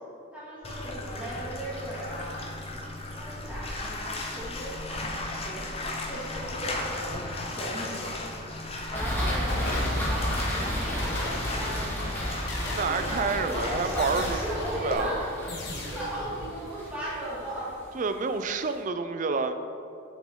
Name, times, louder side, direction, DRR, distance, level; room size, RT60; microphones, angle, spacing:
voice 1, 0.3-2.5 3.0-8.1 8.9-15.3 15.7-17.8, right 1 dB, 5° right, -9 dB, 1.8 m, -37 dB
Bathtub (filling or washing), 0.6-14.9, left 2 dB, 30° left, 0.6 m, -36 dB
sound 1, 8.8-9.0 9.5-10.5 11.0-11.9 12.5-13.3 14.0-14.8 15.5-16.3, left 2 dB, 50° left, 1.2 m, -37 dB
sound 2, 8.9-18.1, equal, 10° left, 1.4 m, -33 dB
voice 2, 12.7-14.4 14.8-15.1 17.9-19.5, right 4 dB, 35° right, 9 dB, 0.3 m, -28 dB
7.1 x 7.0 x 3.6 m, 2.8 s
head